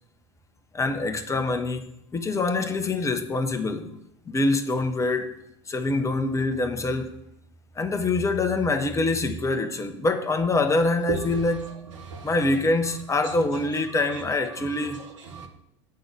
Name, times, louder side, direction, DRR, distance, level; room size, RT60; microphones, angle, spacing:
voice 1, 0.7-1.9 2.1-4.0 4.3-5.3 5.7-7.1 7.8-11.7 12.2-15.0, left 2 dB, 20° left, 1.0 m, -25 dB
voice 2, 11.1-12.5 13.2-13.3 13.6-15.5, right 4 dB, 70° right, 1.4 m, -37 dB
7.7 x 4.0 x 6.8 m
figure-of-eight pair, 75°, 16 cm